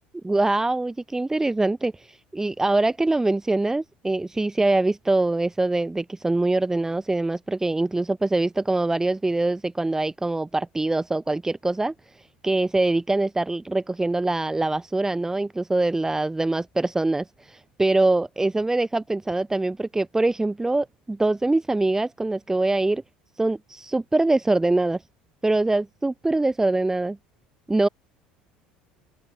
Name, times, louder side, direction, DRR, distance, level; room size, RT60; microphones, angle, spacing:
voice 1, 0.2-23.0 23.4-25.0 25.4-27.2 27.7-27.9, right 2 dB, 10° right, 1.2 m, -23 dB
figure-of-eight pair, 65°, 4 cm